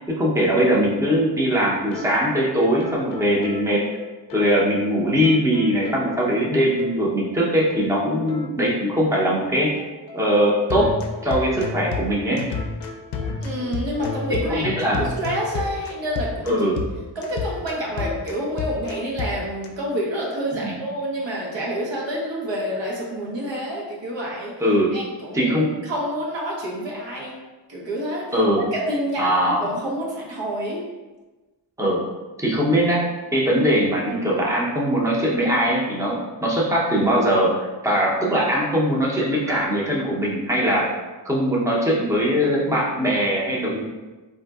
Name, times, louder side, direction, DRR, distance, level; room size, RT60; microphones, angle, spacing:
voice 1, 0.1-3.8 4.3-9.8 10.1-10.9 11.2-12.4 14.3-15.0 16.5-16.8 20.6-20.7 24.6-24.9 25.3-25.7 28.3-28.7 29.2-29.7 31.8-32.0 32.4-40.9 41.2-43.8, equal, 5° right, -4 dB, 0.7 m, -21 dB
sound 1, 1.2-1.3 1.5-1.6 1.9-2.1 2.4-2.5 2.8-4.5 4.8-4.9 5.2-6.5 6.8-7.0 7.2-7.4 7.7-19.7, left 4 dB, 65° left, 0.5 m, -32 dB
voice 2, 13.4-16.6 17.1-24.6 24.9-27.3 27.7-28.3 28.7-30.8, equal, 75° right, -4 dB, 1.0 m, -28 dB
3.7 x 2.7 x 2.3 m, 1.2 s
cardioid pair, 75°, 44 cm